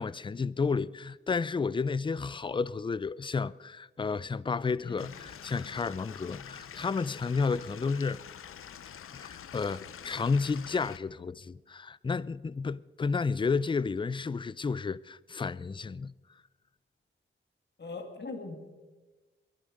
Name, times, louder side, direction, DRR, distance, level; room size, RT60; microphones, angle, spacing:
voice 1, 0.0-8.2 9.1-16.1, left 4 dB, 25° left, 0.4 m, -31 dB
Stream / Liquid, 5.0-11.0, left 8 dB, 85° left, 0.7 m, -46 dB
voice 2, 17.8-18.6, left 3 dB, 55° left, 2.3 m, -40 dB
21.5 x 11.0 x 5.2 m
cardioid pair, 70°, 21 cm